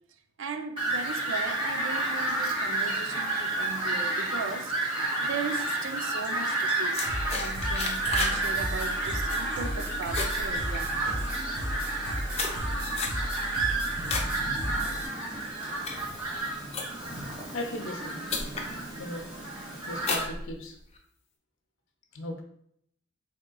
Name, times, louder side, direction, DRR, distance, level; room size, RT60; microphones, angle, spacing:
voice 1, 0.4-4.7 5.2-7.0 7.3-11.0, right 4 dB, 70° right, 0.4 m, -37 dB
Fowl, 0.8-20.2, right 2 dB, 25° right, 1.3 m, -31 dB
sound 1, 6.9-8.4 8.7-9.0 9.4-9.7 10.0-11.2 11.8-14.3 14.7-15.1 15.6-17.2 17.9-18.0 18.3-18.7 19.2-19.5 20.0-21.0, left 4 dB, 30° left, 0.5 m, -33 dB
sound 2, 7.1-15.1, equal, 50° right, 1.4 m, -35 dB
voice 2, 17.5-18.2 19.0-19.3 19.9-20.8 22.1-22.4, left 1 dB, 85° left, 0.7 m, -36 dB
4.2 x 3.6 x 2.2 m
head